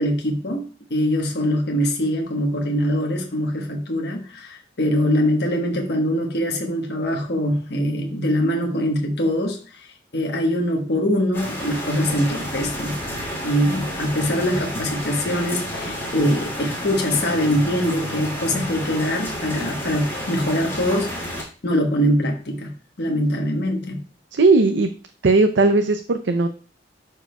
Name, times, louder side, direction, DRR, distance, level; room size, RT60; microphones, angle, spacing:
voice 1, 0.0-13.0 13.4-22.7 23.0-24.0, equal, 60° left, 1 dB, 1.2 m, -23 dB
sound 1, 11.3-21.4, equal, 15° left, 2.7 m, -30 dB
voice 2, 24.3-24.9 25.2-26.5, right 3 dB, 75° right, 7 dB, 0.5 m, -17 dB
11.5 x 4.8 x 2.3 m, 0.39 s
head